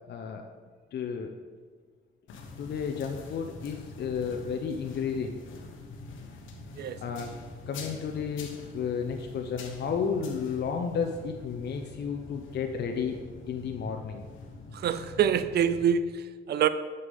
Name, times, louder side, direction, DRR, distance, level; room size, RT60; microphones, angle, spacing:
voice 1, 0.1-0.4 0.9-1.3 2.6-5.4 7.0-7.3 7.7-13.2 13.5-14.2, left 6 dB, 60° left, 4 dB, 0.7 m, -32 dB
sound 1, 2.3-15.8, left 3 dB, 80° left, 1.2 m, -45 dB
voice 2, 14.7-16.7, right 8 dB, 55° right, 13 dB, 0.5 m, -26 dB
6.8 x 6.6 x 5.4 m, 1.5 s
cardioid pair, 90°, 20 cm